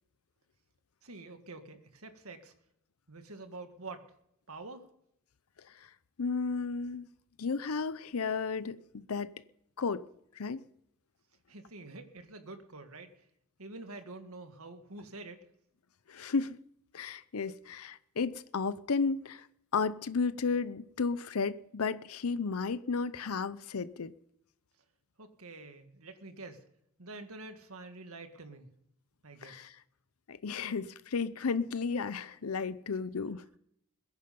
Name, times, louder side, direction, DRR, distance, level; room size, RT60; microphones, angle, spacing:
voice 1, 1.0-2.5 3.1-4.1 4.5-4.9 11.5-13.3 13.6-15.5 25.2-26.6 27.0-28.7 29.2-29.7, right 3 dB, 85° right, 1.9 m, -47 dB
voice 2, 6.2-7.1 7.4-9.3 9.8-10.0 10.3-10.6 16.1-16.6 16.9-19.5 19.7-24.1 29.4-29.8 30.3-33.4, left 4 dB, 90° left, 0.6 m, -33 dB
21.5 x 10.5 x 5.3 m
head